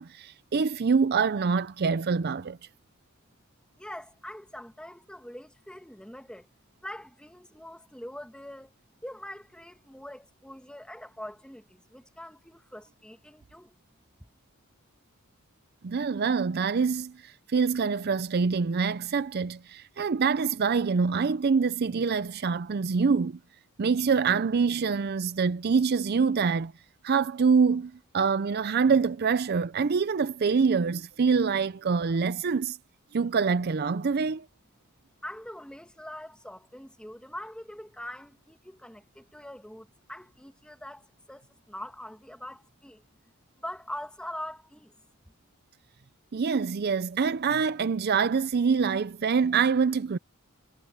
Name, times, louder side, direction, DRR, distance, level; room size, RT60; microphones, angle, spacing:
voice 1, 0.0-2.6 15.8-23.4 23.8-26.7 27.0-32.8 33.1-34.5 46.3-50.2, right 5 dB, 45° right, 0.5 m, -25 dB
voice 2, 3.8-6.5 6.8-8.7 9.0-13.8 14.2-14.3 35.2-43.0 43.6-44.9, left 1 dB, 5° left, 1.8 m, -43 dB
head